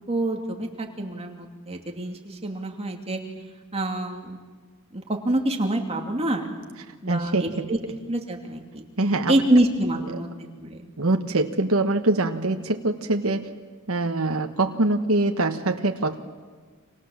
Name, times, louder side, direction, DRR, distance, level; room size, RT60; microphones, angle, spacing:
voice 1, 0.1-3.2 3.7-4.4 4.9-6.5 7.0-7.8 8.1-8.8 9.3-10.3 10.6-10.9, right 1 dB, 30° right, 2 dB, 2.8 m, -26 dB
voice 2, 7.1-7.7 9.0-9.3 10.1-10.2 11.0-13.5 13.9-16.2, right 2 dB, 75° right, 5 dB, 1.4 m, -24 dB
30.0 x 26.0 x 7.4 m, 1.5 s
head